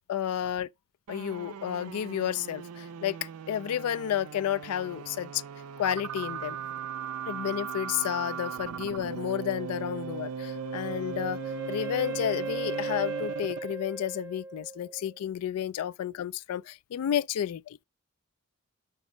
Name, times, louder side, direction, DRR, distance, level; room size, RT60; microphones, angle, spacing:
voice 1, 0.1-0.7 1.1-5.4 5.8-6.6 7.3-11.4 11.7-17.8, left 10 dB, 90° left, 0.3 m, -31 dB
sound 1, 1.1-13.8, right 7 dB, 80° right, 0.4 m, -38 dB
Wind instrument woodwind instrument, 10.4-15.2, right 2 dB, 15° right, 0.7 m, -38 dB
6.0 x 5.2 x 4.9 m
head